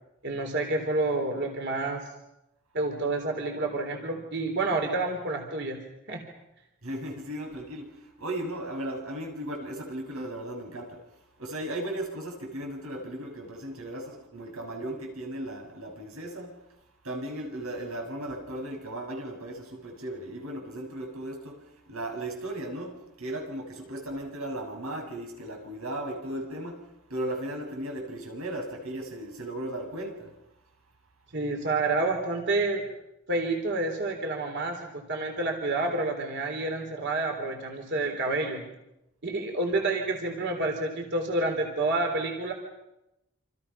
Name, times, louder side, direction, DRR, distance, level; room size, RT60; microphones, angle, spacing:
voice 1, 0.2-2.0 2.7-5.8 6.1-6.2 31.3-32.8 33.3-38.6 39.2-42.5, right 2 dB, 55° right, 3.9 m, -29 dB
voice 2, 6.8-11.0 11.4-16.6 17.0-30.3, right 1 dB, 85° right, 7.0 m, -36 dB
28.5 x 27.5 x 5.9 m
head